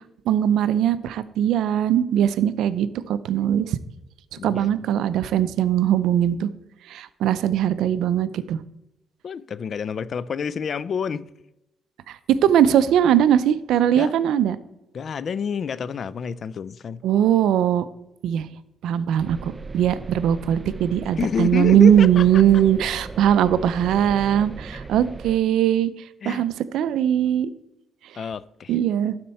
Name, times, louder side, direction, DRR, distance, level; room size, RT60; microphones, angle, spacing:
voice 1, 0.3-3.8 4.4-6.5 6.9-8.6 12.1-14.6 17.0-17.8 18.2-18.5 18.8-25.9 26.3-27.5 28.7-29.1, right 10 dB, 80° right, 0.4 m, -20 dB
voice 2, 4.4-4.7 9.2-11.3 14.0-14.1 14.9-17.0 21.2-22.4 26.2-26.5 28.1-28.8, left 6 dB, 50° left, 0.3 m, -28 dB
sound 1, 19.2-25.4, right 3 dB, 25° right, 0.5 m, -37 dB
12.0 x 4.3 x 4.2 m
cardioid pair, 90°, 0 cm